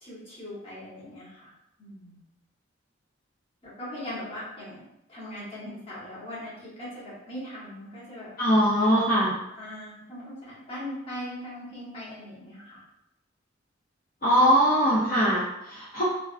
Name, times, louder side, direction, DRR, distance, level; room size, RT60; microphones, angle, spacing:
voice 1, 0.0-1.5 1.8-2.2 3.6-4.8 5.1-8.3 9.6-12.8, left 1 dB, 30° left, -8 dB, 1.1 m, -40 dB
voice 2, 8.4-9.3 14.2-16.0, equal, 50° left, -8 dB, 0.6 m, -21 dB
3.2 x 2.3 x 2.4 m, 0.85 s
head